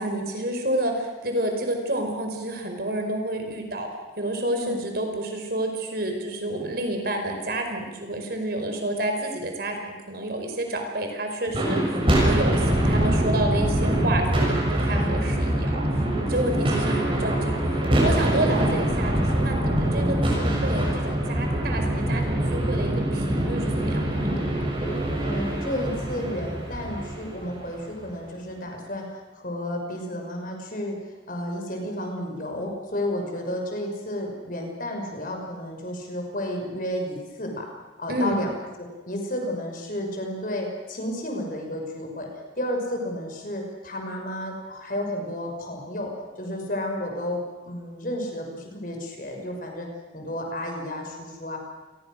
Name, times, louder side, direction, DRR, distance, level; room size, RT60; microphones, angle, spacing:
voice 1, 0.0-3.9 4.2-24.3 38.1-38.4, right 1 dB, 50° right, 4 dB, 5.0 m, -29 dB
sound 1, 11.5-27.9, right 1 dB, 30° right, 7.2 m, -24 dB
voice 2, 14.9-15.3 16.4-16.7 25.2-31.0 31.3-37.7 38.0-38.5 38.8-42.3 42.6-46.1 46.4-49.9 50.1-51.6, left 1 dB, 45° left, 2 dB, 6.0 m, -32 dB
28.5 x 22.5 x 6.5 m, 1.2 s
head